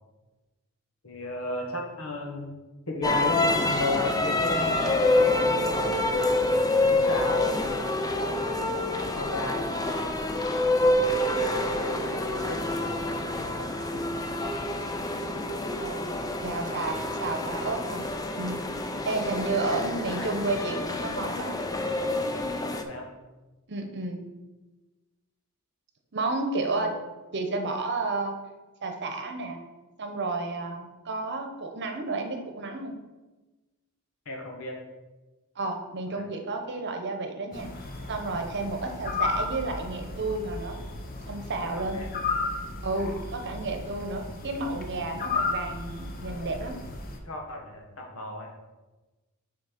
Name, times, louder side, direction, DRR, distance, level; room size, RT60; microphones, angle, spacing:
voice 1, 1.0-2.5 2.9-5.8 6.8-8.0 9.1-10.1 11.2-14.3 19.1-19.2 19.7-19.8 20.2-20.3 20.7-20.8 22.8-23.1 26.8-26.9 34.2-34.8 36.1-36.2 41.8-42.1 46.3-46.7 47.2-48.5, left 2 dB, 70° left, 1 dB, 1.5 m, -34 dB
sound 1, 3.0-22.8, left 2 dB, 15° left, 0.5 m, -27 dB
voice 2, 15.8-18.0 18.4-18.7 19.0-21.6 23.7-24.2 26.1-26.9 27.3-28.4 28.8-29.6 30.0-33.0 35.5-37.7 38.1-40.8 41.3-42.0 42.8-46.7, right 3 dB, 55° right, 5 dB, 1.0 m, -31 dB
sound 2, 37.5-47.2, left 3 dB, 45° left, 0.9 m, -34 dB
6.3 x 4.3 x 5.8 m, 1.2 s
head